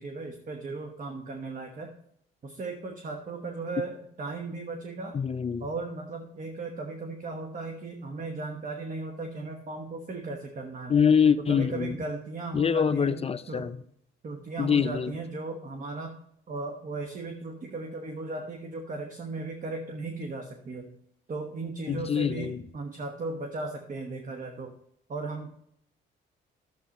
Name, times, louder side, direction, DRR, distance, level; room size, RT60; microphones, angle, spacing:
voice 1, 0.0-1.9 2.4-5.2 5.6-11.0 11.5-13.2 13.5-13.7 14.2-16.1 16.5-20.9 21.3-24.7 25.1-25.6, right 3 dB, 40° right, 4 dB, 1.2 m, -36 dB
voice 2, 5.1-5.6 10.9-12.0 12.5-13.8 14.6-15.1 21.9-22.6, left 7 dB, 30° left, 13 dB, 0.5 m, -24 dB
11.5 x 7.9 x 3.0 m, 0.70 s
cardioid pair, 90°, 20 cm